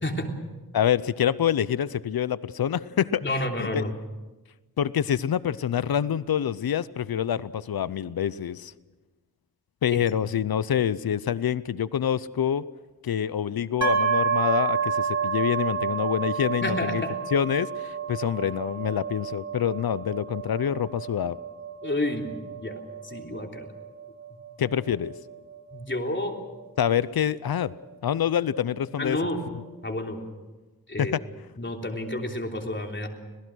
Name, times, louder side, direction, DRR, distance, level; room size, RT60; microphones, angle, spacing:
voice 1, 0.7-3.2 3.6-3.9 4.8-8.7 9.8-12.6 13.0-17.0 17.3-21.4 24.6-25.1 26.8-27.7 28.0-29.2 31.0-31.2, left 9 dB, 85° left, 18 dB, 0.6 m, -26 dB
voice 2, 3.2-3.9 9.9-10.0 16.6-17.2 21.8-23.7 25.7-26.4 29.0-29.4 29.8-30.2 30.9-31.1 31.6-33.1, left 1 dB, 30° left, 2 dB, 3.3 m, -30 dB
sound 1, 13.8-27.5, right 6 dB, 50° right, 2.4 m, -30 dB
26.0 x 18.5 x 6.3 m, 1.2 s
wide cardioid pair, 65°, 35 cm